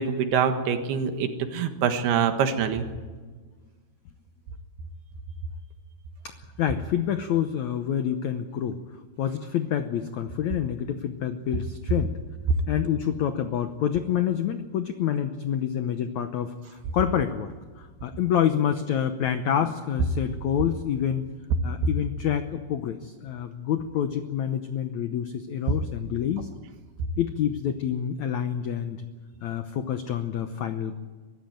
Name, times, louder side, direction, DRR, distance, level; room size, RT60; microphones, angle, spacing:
voice 1, 0.0-2.9, right 7 dB, 80° right, 7 dB, 3.5 m, -25 dB
voice 2, 6.2-8.8 9.2-12.2 12.7-21.3 21.6-26.5 27.2-29.0 29.4-31.0, left 9 dB, 80° left, 8 dB, 1.6 m, -27 dB
23.5 x 14.5 x 9.3 m, 1.4 s
omnidirectional pair, 4.6 m